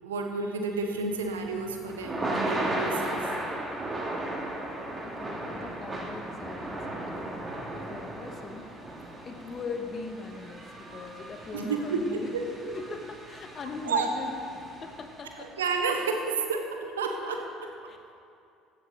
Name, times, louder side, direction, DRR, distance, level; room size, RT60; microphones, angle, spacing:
voice 1, 0.0-3.3 11.5-12.0 12.3-12.7 13.8-14.2 15.4-17.7, right 4 dB, 75° right, 4 dB, 1.1 m, -31 dB
Thunder / Rain, 1.1-15.3, right 1 dB, 20° right, 2.6 m, -36 dB
voice 2, 5.0-7.2 7.7-8.7 9.2-12.3 12.7-14.4 14.8-15.5 17.9-18.1, left 4 dB, 35° left, 5 dB, 1.5 m, -40 dB
15.5 x 12.5 x 3.9 m, 2.5 s
figure-of-eight pair, 60°, 0 cm